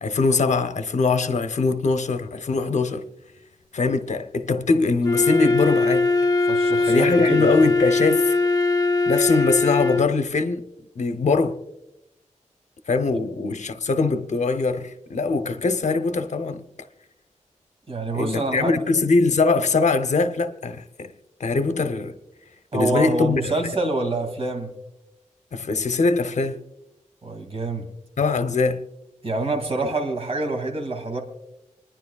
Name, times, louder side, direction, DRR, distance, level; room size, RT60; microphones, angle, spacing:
voice 1, 0.0-3.0 3.7-6.1 6.8-8.4 9.1-10.6 11.0-11.6 12.9-16.6 18.1-21.1 21.4-22.1 22.7-23.5 25.5-26.6 28.2-28.8, left 3 dB, 70° left, 0.7 m, -22 dB
Wind instrument woodwind instrument, 5.0-10.2, left 3 dB, 30° left, 0.6 m, -21 dB
voice 2, 6.5-7.5 17.9-18.7 22.7-24.7 27.2-27.9 29.2-31.2, right 2 dB, 50° right, 2.3 m, -26 dB
27.5 x 10.0 x 2.3 m
wide cardioid pair, 105°, 13 cm